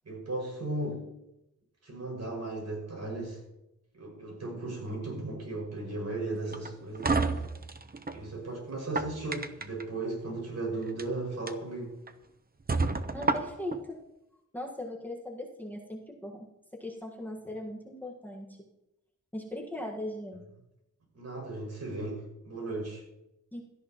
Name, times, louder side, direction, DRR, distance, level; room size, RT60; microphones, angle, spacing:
voice 1, 0.0-1.0 1.8-3.4 3.9-7.2 8.1-11.9 21.1-23.0, right 2 dB, 60° right, 0 dB, 6.0 m, -36 dB
sound 1, 6.5-8.2 8.7-9.8 10.8-11.0 11.5-11.6 12.1-12.2 12.7-13.8, right 3 dB, 30° right, 0.8 m, -30 dB
voice 2, 13.1-14.0 14.5-16.5 16.8-18.6 19.3-20.4 23.5-23.6, left 1 dB, 5° left, -1 dB, 1.6 m, -39 dB
17.0 x 13.0 x 3.0 m, 0.88 s
wide cardioid pair, 155°, 31 cm